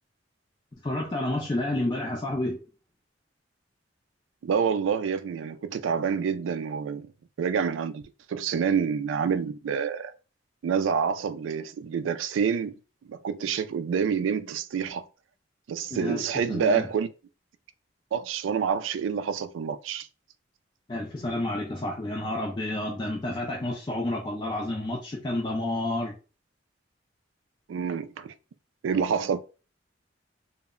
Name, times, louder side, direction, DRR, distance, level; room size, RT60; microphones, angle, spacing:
voice 1, 0.8-2.6 15.9-16.2 16.5-16.9 20.9-26.1, left 1 dB, 25° left, 0.4 m, -30 dB
voice 2, 4.4-7.1 7.4-8.0 8.3-10.1 10.6-12.7 13.1-15.0 15.7-17.1 18.1-20.1 27.7-28.3 28.8-29.4, right 6 dB, 85° right, 0.3 m, -27 dB
2.1 x 2.0 x 3.6 m
head